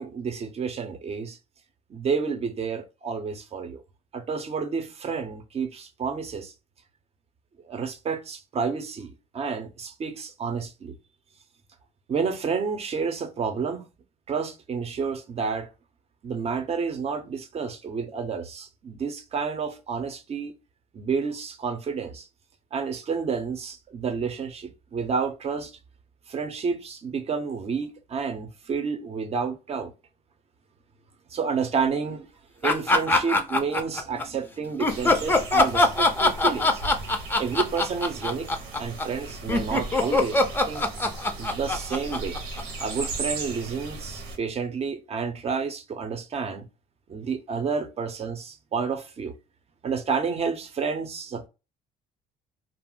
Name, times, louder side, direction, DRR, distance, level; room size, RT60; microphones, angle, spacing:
voice 1, 0.0-1.4 1.9-3.8 4.1-6.5 7.7-10.9 12.1-13.9 14.3-15.7 16.2-20.5 20.9-22.3 22.7-25.7 26.3-29.9 31.3-32.3 32.6-36.8 37.4-38.5 38.8-40.8 41.4-42.4 42.8-46.7 47.1-49.4 49.8-51.5, right 5 dB, 40° right, 0.6 m, -30 dB
sound 1, 32.6-34.2 34.8-43.1, left 2 dB, 10° left, 0.5 m, -22 dB
sound 2, 34.9-44.4, right 3 dB, 90° right, 0.9 m, -37 dB
2.4 x 2.0 x 3.6 m
cardioid pair, 110°, 17 cm